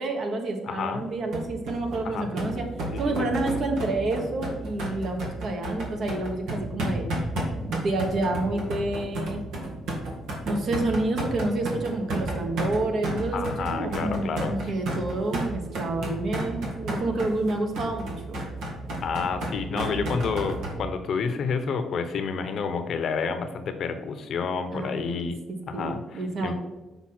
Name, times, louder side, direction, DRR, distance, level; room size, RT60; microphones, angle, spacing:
voice 1, 0.0-2.7 3.0-7.1 7.6-9.4 10.4-18.4 19.7-20.1 24.7-25.2 25.5-26.5, right 2 dB, 55° right, 4 dB, 1.3 m, -29 dB
voice 2, 0.7-1.0 2.0-2.3 2.9-3.3 13.3-14.5 19.0-26.5, left 5 dB, 60° left, 8 dB, 0.7 m, -30 dB
sound 1, 1.3-20.7, right 1 dB, 85° right, 1.7 m, -32 dB
5.9 x 5.4 x 4.3 m, 1.1 s
cardioid pair, 110°, 0 cm